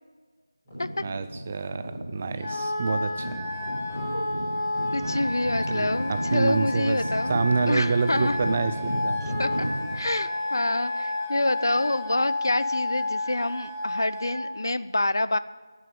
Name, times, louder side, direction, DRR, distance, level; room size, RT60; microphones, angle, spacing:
sound 1, 0.6-10.1, equal, 10° left, 5.0 m, -34 dB
voice 1, 1.0-3.4 5.7-7.0 7.3-9.4, right 4 dB, 15° right, 11 dB, 0.3 m, -27 dB
Wind instrument woodwind instrument, 2.4-14.4, left 2 dB, 30° left, 3.3 m, -31 dB
voice 2, 4.1-4.5 4.9-7.4 7.7-8.4 9.4-9.7 9.9-15.4, left 2 dB, 60° left, 15 dB, 0.7 m, -27 dB
12.5 x 9.4 x 9.2 m, 1.5 s
figure-of-eight pair, 175°, 2 cm